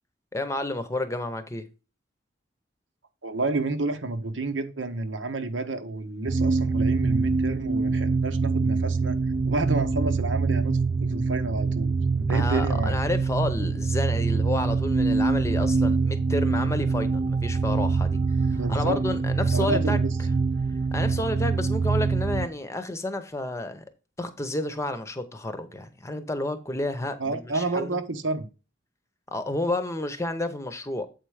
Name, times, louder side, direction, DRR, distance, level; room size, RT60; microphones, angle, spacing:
voice 1, 0.3-1.6 12.3-20.0 20.9-23.8 24.2-28.0 29.3-31.1, left 1 dB, 15° left, 0.8 m, -30 dB
voice 2, 3.2-9.2 9.4-10.7 11.0-13.0 18.5-19.0 19.4-20.1 27.2-28.5, right 3 dB, 90° right, 1.0 m, -30 dB
sound 1, 6.3-22.5, right 4 dB, 30° right, 0.3 m, -24 dB
7.8 x 4.5 x 4.8 m
head